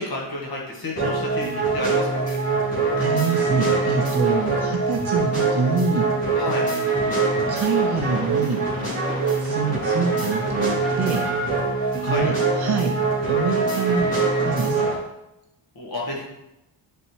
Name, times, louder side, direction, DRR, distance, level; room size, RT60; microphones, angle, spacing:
voice 1, 0.0-2.4 6.3-6.7 12.0-12.4 15.7-16.3, left 1 dB, 45° left, -3 dB, 1.4 m, -30 dB
sound 1, 1.0-15.0, right 4 dB, 30° left, 2.2 m, -23 dB
voice 2, 3.0-6.1 7.5-8.6 9.4-11.2 12.0-12.9 13.3-14.1 14.4-15.0, right 4 dB, 70° right, -1 dB, 1.8 m, -25 dB
9.5 x 4.1 x 3.1 m, 0.89 s
wide cardioid pair, 150°, 50 cm